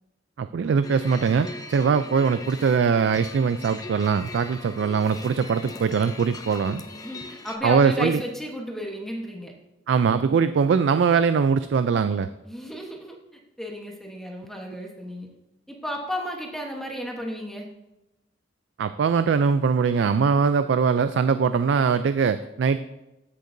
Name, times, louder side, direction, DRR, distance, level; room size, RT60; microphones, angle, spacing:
voice 1, 0.4-6.8 7.6-8.2 9.9-12.3 18.8-22.8, right 6 dB, 70° right, 11 dB, 0.3 m, -22 dB
sound 1, 0.8-7.6, left 2 dB, 20° left, 0.6 m, -41 dB
voice 2, 6.9-9.5 12.4-13.2 13.6-15.3 15.7-17.7, equal, ahead, 0 dB, 1.1 m, -33 dB
14.5 x 6.6 x 2.6 m, 0.96 s
head